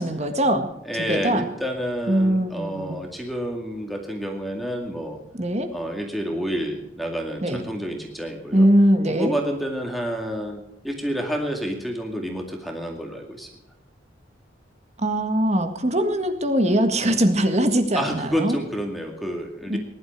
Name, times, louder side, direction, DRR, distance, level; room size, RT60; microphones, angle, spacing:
voice 1, 0.0-0.7 1.1-1.5 2.1-2.9 5.3-5.7 7.4-7.6 8.5-9.4 15.0-18.6 19.7-19.8, right 1 dB, 35° right, 7 dB, 1.7 m, -21 dB
voice 2, 0.9-5.2 5.7-8.7 9.1-13.5 17.0-17.2 17.9-19.8, equal, ahead, 1 dB, 2.2 m, -29 dB
20.5 x 11.5 x 4.6 m, 0.87 s
head